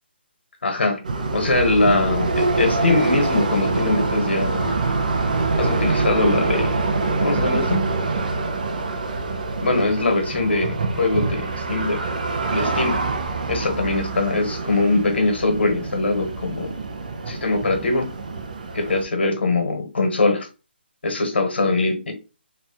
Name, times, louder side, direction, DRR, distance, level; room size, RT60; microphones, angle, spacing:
voice 1, 0.6-1.0 1.3-4.7 5.6-6.7 7.2-7.8 9.6-12.0 12.5-13.0 13.5-16.7 17.3-18.0 18.7-20.5 21.0-22.1, left 2 dB, 75° left, 5 dB, 1.5 m, -22 dB
sound 1, 1.0-19.0, right 3 dB, 45° right, 0.6 m, -25 dB
3.1 x 2.4 x 4.2 m, 0.31 s
hypercardioid pair, 180°, 6 cm